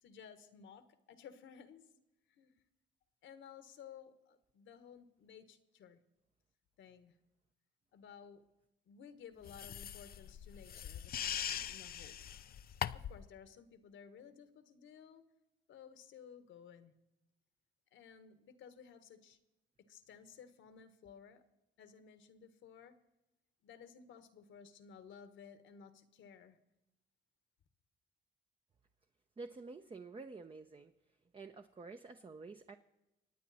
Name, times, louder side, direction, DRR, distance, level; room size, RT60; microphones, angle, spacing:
voice 1, 0.0-1.8 2.3-2.6 3.2-6.0 6.8-7.2 7.9-8.4 8.8-12.2 12.9-15.3 15.7-16.9 17.9-19.4 19.8-21.4 21.8-23.0 23.6-26.6, left 7 dB, 75° left, 11 dB, 1.5 m, -56 dB
sound 1, 9.5-13.3, left 9 dB, 50° left, 0.5 m, -41 dB
voice 2, 29.4-30.9 31.3-32.8, right 3 dB, 25° right, 6 dB, 0.7 m, -49 dB
25.0 x 9.3 x 4.2 m, 0.93 s
cardioid pair, 90°, 20 cm